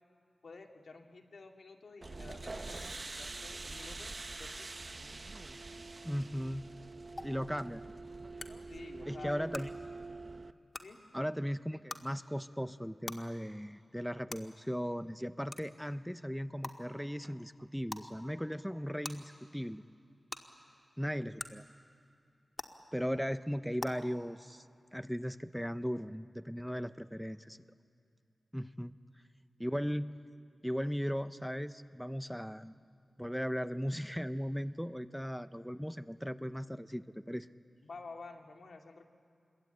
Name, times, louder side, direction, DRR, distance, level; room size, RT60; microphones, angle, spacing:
voice 1, 0.4-4.7 8.7-9.4 10.8-11.0 37.8-39.1, left 3 dB, 75° left, 3 dB, 2.2 m, -50 dB
sound 1, 2.0-10.5, right 3 dB, 40° right, 0.7 m, -45 dB
voice 2, 6.0-6.6 7.2-8.0 9.1-9.7 11.1-19.8 21.0-21.7 22.9-24.7 24.9-27.6 28.5-28.9 29.6-30.2 30.6-32.7 33.2-37.5, equal, ahead, 12 dB, 0.6 m, -37 dB
sound 2, 7.2-7.3 8.4-8.5 9.5-9.6 10.7-10.8 11.9-12.0 13.1-13.2 14.3-14.4 15.5-15.6 16.6-16.7 17.9-18.0 19.0-19.1 20.3-20.4 21.4-21.5 22.6-22.7 23.8-23.9, left 2 dB, 35° left, 1.7 m, -40 dB
27.0 x 22.5 x 9.0 m, 2.4 s
wide cardioid pair, 90°, 0 cm